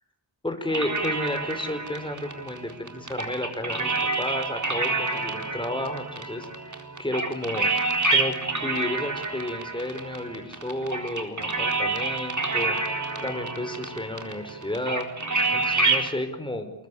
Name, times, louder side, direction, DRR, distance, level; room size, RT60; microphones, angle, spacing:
voice 1, 0.4-12.7 13.2-15.1 15.5-16.7, left 1 dB, 10° left, 6 dB, 4.9 m, -32 dB
sound 1, 0.7-16.1, right 3 dB, 45° right, 4.2 m, -28 dB
28.0 x 21.5 x 8.6 m, 0.74 s
wide cardioid pair, 75°, 42 cm